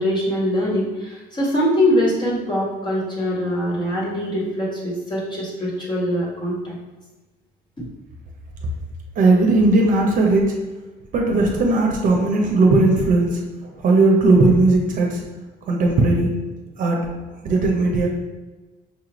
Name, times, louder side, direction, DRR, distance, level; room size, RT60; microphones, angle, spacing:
voice 1, 0.0-6.8 7.8-7.9, equal, 25° left, -4 dB, 1.4 m, -23 dB
voice 2, 9.2-10.4 11.1-13.4 13.8-15.2 15.7-16.3 16.8-17.0 17.4-18.1, right 2 dB, 50° right, 1 dB, 0.7 m, -17 dB
5.4 x 2.5 x 3.0 m, 1.2 s
cardioid pair, 110°, 17 cm